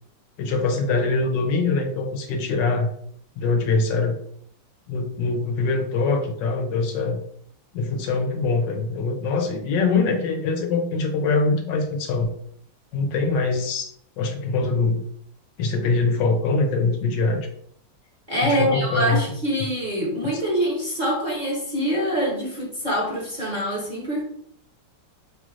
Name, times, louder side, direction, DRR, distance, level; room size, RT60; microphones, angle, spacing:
voice 1, 0.4-2.9 3.4-4.2 4.9-7.2 7.7-12.3 12.9-13.9 14.2-15.0 15.6-17.5 18.4-19.2, left 3 dB, 85° left, 4 dB, 1.4 m, -23 dB
voice 2, 18.3-24.2, equal, 30° right, -5 dB, 1.0 m, -25 dB
5.6 x 2.5 x 3.1 m, 0.67 s
omnidirectional pair, 1.9 m